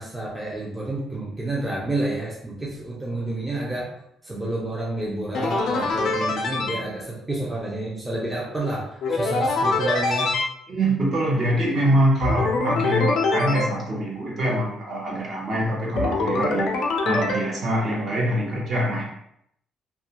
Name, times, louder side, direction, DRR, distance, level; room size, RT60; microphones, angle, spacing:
voice 1, 0.0-3.9 4.2-10.3, right 2 dB, 10° right, -5 dB, 0.4 m, -29 dB
sound 1, 5.3-6.8 9.0-10.4 12.2-13.6 16.0-17.4, left 3 dB, 65° left, 0.4 m, -23 dB
voice 2, 10.7-19.0, right 1 dB, 45° right, -3 dB, 0.8 m, -24 dB
2.3 x 2.1 x 2.9 m, 0.74 s
cardioid pair, 150°, 0 cm